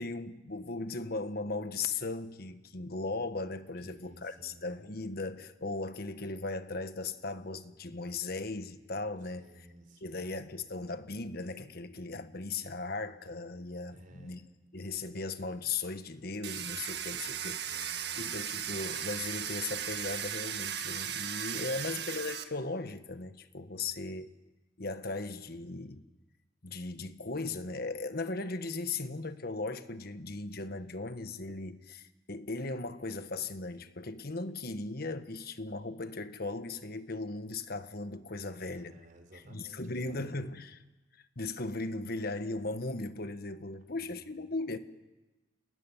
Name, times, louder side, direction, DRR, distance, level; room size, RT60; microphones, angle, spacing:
voice 1, 0.0-9.5 10.0-14.5 14.7-24.3 24.8-26.0 26.6-39.0 39.3-40.8 41.4-44.8, left 3 dB, 55° left, 1.4 m, -37 dB
voice 2, 3.8-4.7 9.2-10.4 13.9-14.5 16.9-18.4 23.7-24.0 38.4-40.4 43.9-44.5, right 1 dB, 50° right, 4.6 m, -57 dB
Domestic sounds home sounds, 16.4-22.4, right 9 dB, 65° right, 1.7 m, -37 dB
29.0 x 19.5 x 9.9 m
head